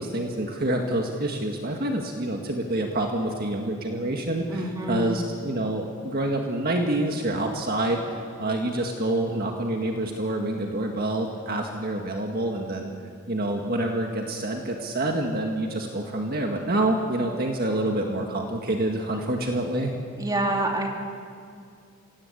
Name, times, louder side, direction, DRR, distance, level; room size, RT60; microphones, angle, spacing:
voice 1, 0.0-12.9 13.3-19.9, right 1 dB, 45° right, 2 dB, 1.8 m, -27 dB
voice 2, 4.5-5.2 20.2-20.9, right 1 dB, 15° right, 1 dB, 2.6 m, -27 dB
28.0 x 17.5 x 8.5 m, 2.3 s
head